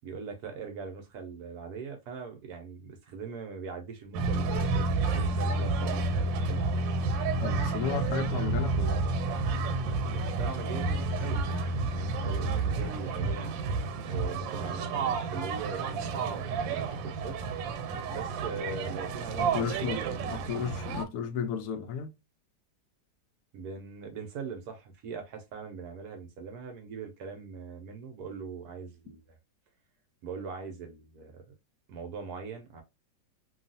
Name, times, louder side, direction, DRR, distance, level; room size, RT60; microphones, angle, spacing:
voice 1, 0.0-6.7 10.0-11.5 11.8-13.5 14.0-17.4 18.0-19.9 23.5-29.2 30.2-31.4 31.9-32.8, right 5 dB, 70° right, 1.0 m, -41 dB
sound 1, 4.1-21.1, right 3 dB, 90° right, 1.3 m, -30 dB
voice 2, 7.4-9.1 19.4-22.1, left 7 dB, 75° left, 0.9 m, -34 dB
3.0 x 2.3 x 2.5 m
omnidirectional pair, 2.0 m